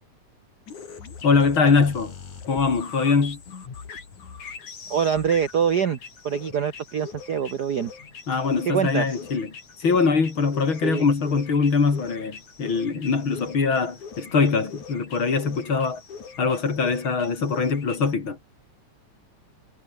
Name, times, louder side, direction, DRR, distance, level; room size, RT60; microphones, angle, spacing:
sound 1, 0.7-18.1, left 6 dB, 85° left, 5.4 m, -42 dB
voice 1, 1.2-2.2 2.5-3.4 8.3-9.5 9.8-16.0 16.4-18.4, left 5 dB, 45° left, 3.8 m, -22 dB
voice 2, 4.9-6.0 6.2-7.9 8.7-9.2 10.8-11.0, right 7 dB, 55° right, 1.1 m, -24 dB
omnidirectional pair, 3.3 m